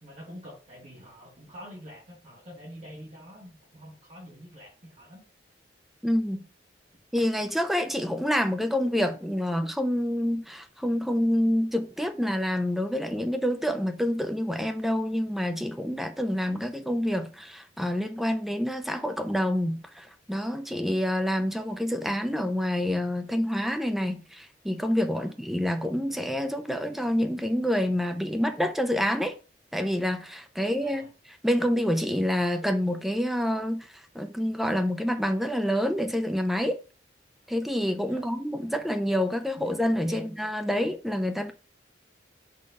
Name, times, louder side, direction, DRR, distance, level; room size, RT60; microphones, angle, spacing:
voice 1, 0.0-5.2 25.1-25.3 30.6-31.1 38.0-38.3 39.6-39.8 40.0-40.4, equal, 40° right, 2.3 m, -45 dB
voice 2, 6.0-6.5 7.1-29.4 29.7-31.1 31.4-36.8 37.5-41.5, equal, ahead, 0.5 m, -27 dB
4.8 x 3.9 x 5.3 m
head